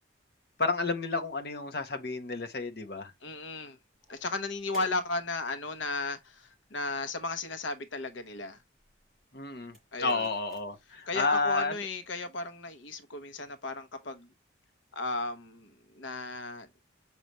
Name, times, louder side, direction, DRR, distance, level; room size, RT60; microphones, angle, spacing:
voice 1, 0.6-3.1 9.3-11.7, left 3 dB, 55° left, 1.0 m, -31 dB
voice 2, 3.2-3.8 4.1-8.6 9.9-10.3 11.1-14.3 14.9-16.7, left 3 dB, 80° left, 0.9 m, -35 dB
sound 1, 3.9-11.4, right 1 dB, 5° right, 4.9 m, -58 dB
6.6 x 4.9 x 3.0 m
head